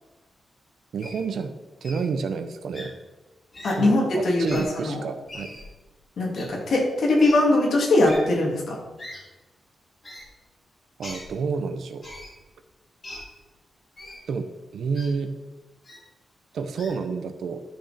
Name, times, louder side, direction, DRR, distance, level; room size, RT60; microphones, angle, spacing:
voice 1, 0.9-1.5 1.8-2.9 3.8-5.5 11.0-12.1 14.3-14.5 14.7-15.3 16.5-17.6, right 5 dB, 75° right, 9 dB, 0.8 m, -29 dB
Wild animals, 1.0-1.2 1.8-2.0 2.7-2.8 3.5-3.7 4.4-4.6 5.3-5.6 6.3-6.4 7.2-7.3 8.0-8.2 9.0-9.2 10.0-10.2 11.0-11.2 12.0-12.3 13.0-13.2 14.0-14.2 14.9-15.1 15.8-16.0 16.8-16.9, left 1 dB, 25° left, 3.3 m, -40 dB
voice 2, 3.6-5.0 6.2-8.8, left 2 dB, 65° left, -1 dB, 2.6 m, -21 dB
12.5 x 6.3 x 4.3 m, 1.2 s
wide cardioid pair, 165°, 0 cm